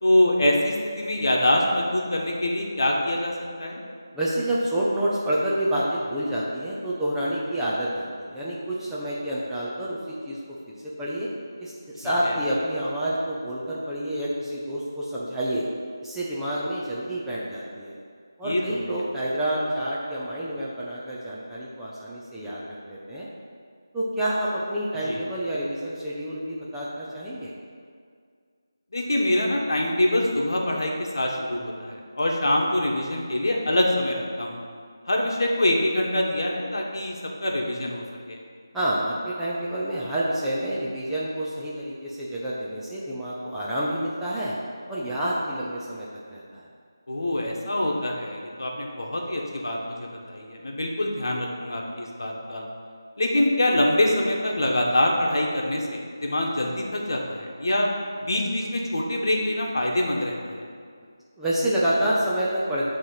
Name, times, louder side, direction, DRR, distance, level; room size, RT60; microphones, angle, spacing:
voice 1, 0.0-3.3 3.6-3.8 12.0-12.4 18.4-18.8 25.1-25.2 28.9-34.6 35.1-37.2 37.4-38.4 47.1-52.6 53.2-57.9 58.2-60.6, left 1 dB, 65° left, -1 dB, 1.2 m, -25 dB
voice 2, 4.1-10.4 10.7-11.3 11.6-15.7 16.0-18.0 18.4-23.3 23.9-27.5 38.7-44.5 44.9-46.6 61.4-62.9, right 1 dB, 5° right, -9 dB, 0.4 m, -28 dB
8.8 x 3.0 x 5.6 m, 2.1 s
figure-of-eight pair, 170°, 2 cm